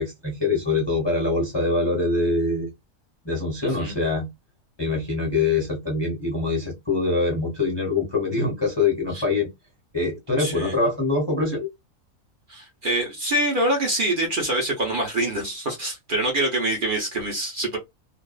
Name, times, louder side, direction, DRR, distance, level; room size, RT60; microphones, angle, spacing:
voice 1, 0.0-2.7 3.2-4.3 4.8-9.5 9.9-11.7, left 3 dB, 25° left, 0.6 m, -24 dB
voice 2, 10.4-10.7 12.5-17.8, right 1 dB, 45° right, 0.8 m, -25 dB
2.5 x 2.3 x 2.3 m
omnidirectional pair, 1.5 m